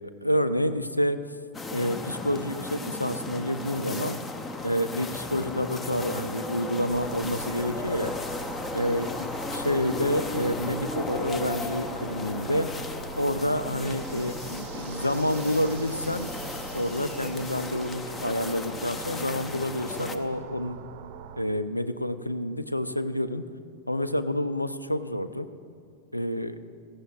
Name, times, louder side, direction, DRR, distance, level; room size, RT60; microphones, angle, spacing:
voice 1, 0.2-1.2 1.7-4.2 4.6-8.2 8.7-12.7 13.2-16.3 16.7-20.8 21.4-23.4 23.9-25.5 26.1-26.6, left 1 dB, 85° left, 12 dB, 0.4 m, -28 dB
sound 1, 1.5-20.2, left 3 dB, 20° left, 0.7 m, -35 dB
sound 2, 6.9-21.4, right 6 dB, 50° right, 0.6 m, -42 dB
17.5 x 14.0 x 2.4 m, 2.4 s
figure-of-eight pair, 90°, 0 cm